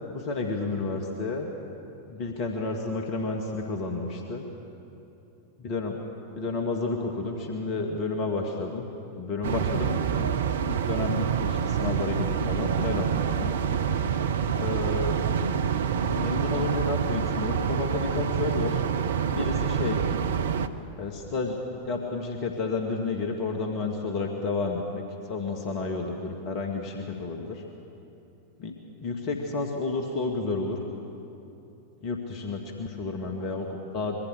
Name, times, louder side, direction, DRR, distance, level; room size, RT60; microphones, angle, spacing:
voice 1, 0.1-1.5 2.1-4.4 5.6-6.0 6.4-8.9 9.1-10.3 10.7-13.6 14.5-15.2 16.1-18.8 19.3-20.0 21.0-25.0 25.3-27.6 28.6-28.7 29.0-30.8 32.0-34.2, left 3 dB, 40° left, 3 dB, 2.2 m, -31 dB
sound 1, 9.4-20.7, right 7 dB, 65° right, 0.8 m, -27 dB
25.0 x 23.0 x 6.7 m, 3.0 s
figure-of-eight pair, 90°, 0 cm